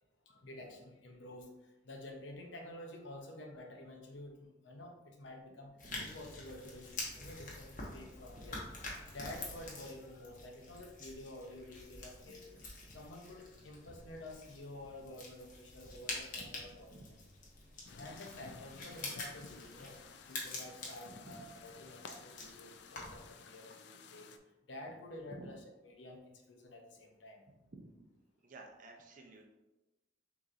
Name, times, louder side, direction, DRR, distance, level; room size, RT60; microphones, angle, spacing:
voice 1, 0.3-1.5 1.8-5.7 6.0-12.6 12.9-17.0 17.9-20.0 20.3-24.3 24.7-26.2 26.5-27.5, left 1 dB, 85° left, 2 dB, 0.8 m, -50 dB
sound 1, 5.8-23.3, left 2 dB, 45° left, 1.0 m, -47 dB
sound 2, 17.9-24.4, left 5 dB, 70° left, 0.4 m, -54 dB
voice 2, 21.1-21.4 25.4-25.5 27.7-27.9 28.4-29.5, right 2 dB, 45° right, 1 dB, 0.6 m, -52 dB
6.4 x 3.0 x 2.5 m, 1.0 s
head